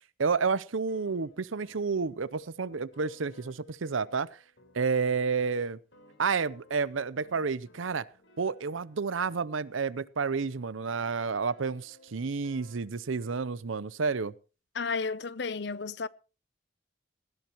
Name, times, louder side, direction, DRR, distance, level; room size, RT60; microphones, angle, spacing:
voice 1, 0.2-4.3 4.7-5.8 6.2-8.1 8.4-14.3, right 5 dB, 85° right, 0.7 m, -30 dB
sound 1, 0.6-9.4 10.2-13.5, left 1 dB, 80° left, 4.2 m, -61 dB
voice 2, 14.7-16.1, left 4 dB, 60° left, 0.6 m, -32 dB
19.0 x 16.5 x 3.0 m
head